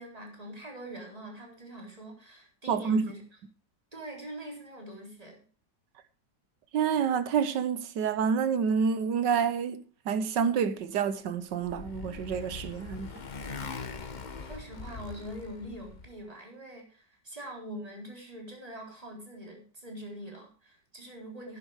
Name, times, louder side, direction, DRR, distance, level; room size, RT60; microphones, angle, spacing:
voice 1, 0.0-3.2 3.9-5.4 14.4-21.6, right 1 dB, 20° right, 4.0 m, -43 dB
voice 2, 2.7-3.1 6.7-9.8 10.0-13.1, right 6 dB, 80° right, 1.7 m, -28 dB
Motorcycle, 11.1-16.2, left 4 dB, 35° left, 0.8 m, -42 dB
11.0 x 11.0 x 4.9 m
omnidirectional pair, 1.9 m